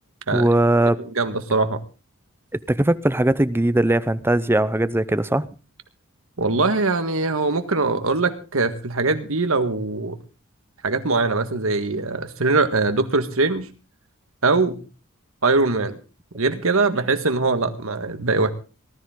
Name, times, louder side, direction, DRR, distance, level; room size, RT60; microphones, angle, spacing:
voice 1, 0.3-1.0 2.7-5.5, right 1 dB, 10° right, 0.6 m, -19 dB
voice 2, 1.1-1.8 6.4-10.2 10.8-13.7 14.4-14.8 15.4-16.0 16.3-18.5, right 3 dB, 70° right, 1.7 m, -22 dB
19.0 x 13.0 x 3.8 m
head